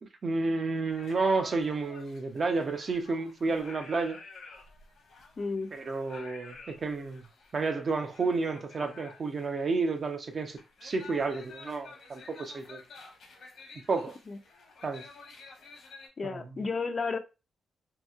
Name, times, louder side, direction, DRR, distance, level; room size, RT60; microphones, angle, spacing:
voice 1, 0.2-4.2 5.7-7.2 7.5-12.8 13.9-14.2 14.8-15.0 16.2-16.4, right 3 dB, 40° right, 0.5 m, -31 dB
sound 1, 0.9-16.1, left 3 dB, 80° left, 1.0 m, -51 dB
voice 2, 5.4-5.7 14.3-14.4 16.2-17.2, left 4 dB, 35° left, 0.4 m, -32 dB
2.8 x 2.7 x 2.3 m
wide cardioid pair, 135°, 0 cm